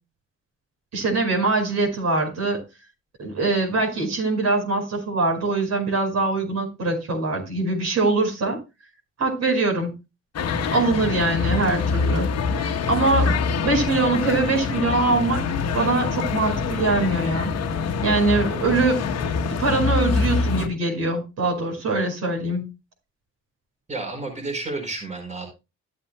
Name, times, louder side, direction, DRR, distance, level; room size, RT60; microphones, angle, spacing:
voice 1, 0.9-2.6 3.2-8.6 9.2-9.9 10.7-12.3 12.9-13.3 13.6-15.4 15.7-17.5 18.0-19.0 19.5-22.7, right 3 dB, 60° right, -1 dB, 5.3 m, -23 dB
sound 1, 10.3-20.7, left 5 dB, 55° left, 1.2 m, -25 dB
voice 2, 23.9-25.5, right 3 dB, 25° right, 1 dB, 4.6 m, -31 dB
14.0 x 8.4 x 2.3 m, 0.25 s
cardioid pair, 90°, 30 cm